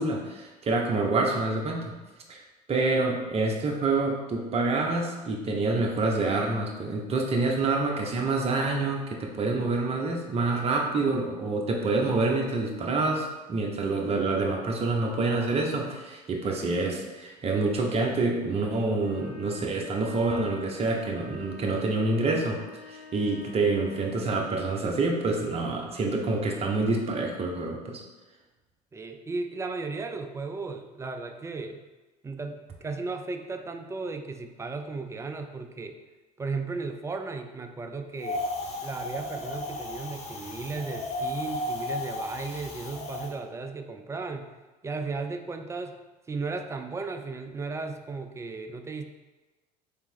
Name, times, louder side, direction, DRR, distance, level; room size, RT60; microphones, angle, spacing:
voice 1, 0.0-1.8 2.3-2.4 2.7-22.6 22.9-28.0, right 3 dB, 30° right, 0 dB, 0.8 m, -27 dB
sound 1, 18.9-24.4, left 4 dB, 80° left, 1.1 m, -47 dB
voice 2, 28.9-31.8 32.2-36.0 36.4-38.4 38.8-44.5 44.8-46.0 46.3-49.1, right 3 dB, 15° right, 6 dB, 0.3 m, -35 dB
Wind, 38.2-43.3, left 2 dB, 30° left, 0.9 m, -34 dB
3.4 x 2.8 x 4.3 m, 1.2 s
figure-of-eight pair, 65°, 21 cm